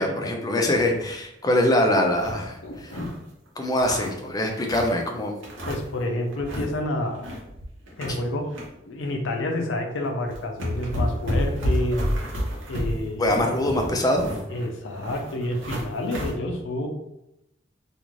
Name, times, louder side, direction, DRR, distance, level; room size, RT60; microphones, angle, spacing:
voice 1, 0.0-2.9 3.6-5.4 13.2-14.3, left 1 dB, 20° left, 3 dB, 0.4 m, -23 dB
sound 1, 0.7-1.1 1.5-1.6 1.9-3.2 3.6-5.0 5.4-6.0 6.3-6.7 7.0-8.7 9.0-9.2 9.9-10.0 10.3-16.3, equal, 90° right, 0.9 m, -30 dB
voice 2, 2.6-3.1 5.7-7.2 8.0-8.5 8.9-12.0 12.7-13.7 14.5-16.9, left 1 dB, 80° left, 3 dB, 0.5 m, -29 dB
2.4 x 2.4 x 3.0 m, 0.86 s
head